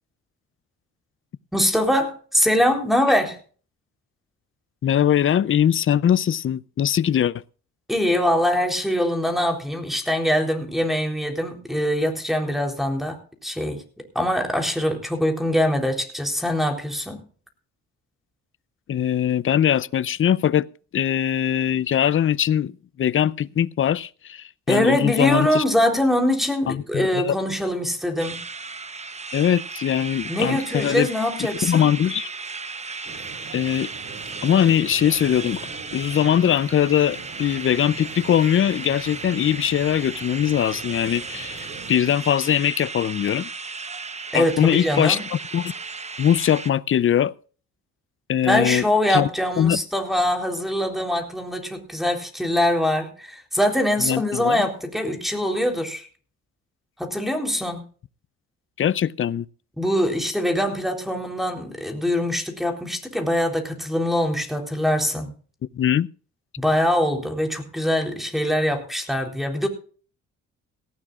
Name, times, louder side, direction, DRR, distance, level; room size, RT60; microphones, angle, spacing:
voice 1, 1.5-3.4 7.9-17.2 24.7-28.4 30.3-31.9 44.3-45.2 48.4-56.1 57.0-57.8 59.8-65.3 66.6-69.7, equal, ahead, 3.8 m, -23 dB
voice 2, 4.8-7.4 18.9-20.7 20.9-22.7 23.0-25.6 26.7-27.4 29.3-31.1 31.6-32.3 33.5-33.9 34.4-35.6 35.9-43.5 44.3-45.2 45.5-45.7 46.2-47.3 48.3-48.8 49.1-49.3 49.6-49.8 54.0-54.6 58.8-59.5 65.7-66.1, left 9 dB, 45° left, 0.6 m, -21 dB
sound 1, 28.2-46.7, right 4 dB, 20° right, 1.0 m, -35 dB
sound 2, 33.0-42.0, right 5 dB, 45° right, 2.9 m, -42 dB
18.0 x 15.0 x 2.5 m
cardioid pair, 90°, 30 cm